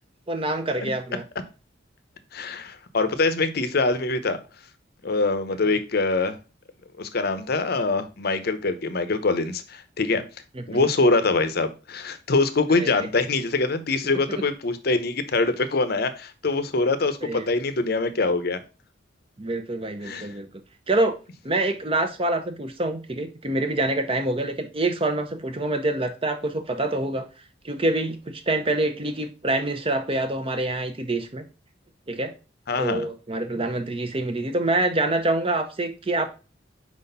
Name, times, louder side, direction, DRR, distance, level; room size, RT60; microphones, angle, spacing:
voice 1, 0.3-1.2 5.7-5.8 10.5-10.9 12.7-12.9 14.3-14.4 17.2-17.5 19.4-20.5 20.9-21.2 21.4-27.3 27.6-31.4 32.1-32.3 32.8-36.3, right 2 dB, 30° right, 7 dB, 0.7 m, -26 dB
voice 2, 2.3-4.4 5.0-6.4 7.0-10.2 10.7-18.6 20.0-20.3 32.7-33.1, left 3 dB, 55° left, 10 dB, 0.7 m, -24 dB
4.9 x 4.1 x 5.3 m, 0.32 s
head